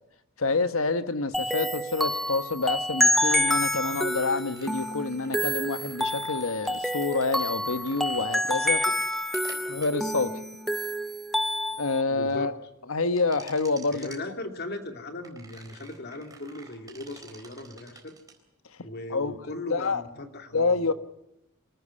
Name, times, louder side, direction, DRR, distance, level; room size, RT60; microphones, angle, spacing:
voice 1, 0.4-8.8 9.7-10.3 11.8-12.5 12.9-14.1 19.1-19.3 19.7-20.0 20.5-20.9, left 3 dB, 75° left, 1.3 m, -27 dB
sound 1, 1.3-12.0, left 1 dB, ahead, 0.8 m, -28 dB
sound 2, 4.1-11.9 13.2-14.2 15.2-18.4, right 4 dB, 15° right, 4.1 m, -47 dB
voice 2, 9.3-9.7 12.1-12.5 13.9-18.2 18.8-20.8, left 2 dB, 50° left, 2.8 m, -38 dB
25.0 x 14.0 x 9.8 m
head